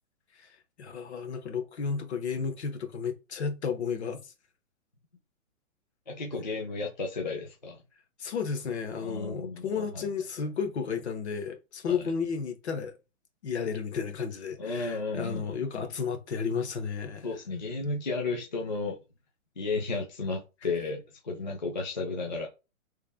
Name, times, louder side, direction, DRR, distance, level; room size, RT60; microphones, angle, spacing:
voice 1, 0.8-4.2 8.2-12.9 13.4-17.3, left 6 dB, 55° left, 0.8 m, -32 dB
voice 2, 6.1-7.8 9.0-10.1 11.9-12.0 14.6-15.8 17.2-19.0 19.6-22.5, left 3 dB, 35° left, 0.4 m, -33 dB
3.2 x 2.4 x 3.3 m
hypercardioid pair, 175°, 41 cm